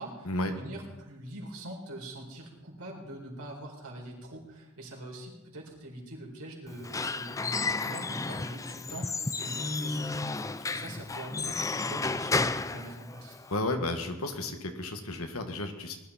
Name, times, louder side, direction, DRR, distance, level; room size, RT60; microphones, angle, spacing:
voice 1, 0.0-10.4 10.7-13.3, right 1 dB, 75° right, -1 dB, 4.4 m, -43 dB
Squeak / Wood, 6.7-13.6, left 3 dB, 15° left, 0.4 m, -32 dB
voice 2, 13.5-16.0, left 2 dB, 70° left, 5 dB, 1.8 m, -32 dB
20.5 x 12.0 x 4.3 m, 1.0 s
head